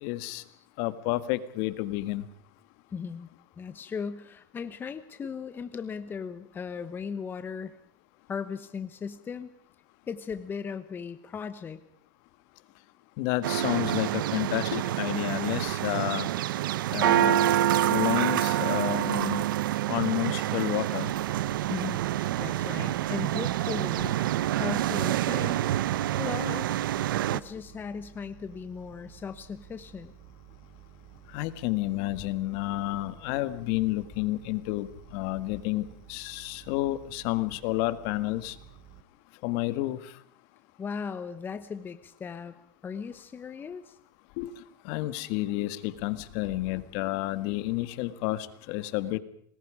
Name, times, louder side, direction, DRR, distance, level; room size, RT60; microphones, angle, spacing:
voice 1, 0.0-0.4 0.8-2.3 13.2-16.3 16.9-17.4 17.9-19.4 19.9-21.1 31.3-38.6 39.4-40.1 44.4-44.5 44.8-49.2, left 17 dB, 55° left, 13 dB, 1.7 m, -30 dB
voice 2, 2.9-3.3 3.6-7.8 8.3-9.5 10.1-11.8 21.7-22.0 22.4-24.2 24.5-25.8 26.2-26.8 27.3-30.1 40.8-42.5 42.8-44.0, left 6 dB, 20° left, 11 dB, 1.1 m, -37 dB
sound 1, 13.4-27.4, right 13 dB, 85° right, 0.8 m, -27 dB
sound 2, 21.1-39.0, right 10 dB, 45° right, 2.8 m, -53 dB
29.5 x 20.5 x 5.0 m, 0.64 s
supercardioid pair, 140°, 11 cm